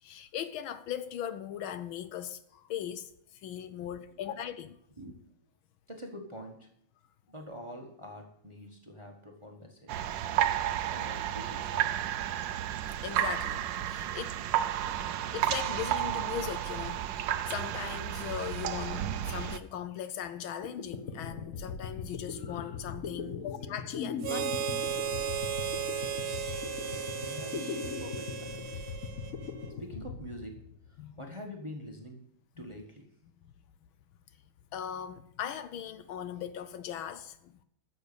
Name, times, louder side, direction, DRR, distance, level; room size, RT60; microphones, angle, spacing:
voice 1, 0.0-3.1 3.4-4.8 13.0-13.6 13.9-14.4 15.3-24.5 29.1-29.3 31.0-31.3 32.6-32.7 34.7-37.6, left 9 dB, 75° left, 1.5 m, -39 dB
voice 2, 5.9-6.7 7.3-10.0 10.9-11.9 27.2-28.9 29.8-32.3 32.6-33.1, equal, 15° right, 1.2 m, -46 dB
sound 1, 9.9-19.6, right 11 dB, 70° right, 1.2 m, -32 dB
sound 2, 20.6-31.1, left 5 dB, 50° left, 1.0 m, -40 dB
Harmonica, 24.2-29.7, right 7 dB, 90° right, 2.3 m, -35 dB
13.0 x 7.2 x 6.8 m
omnidirectional pair, 2.4 m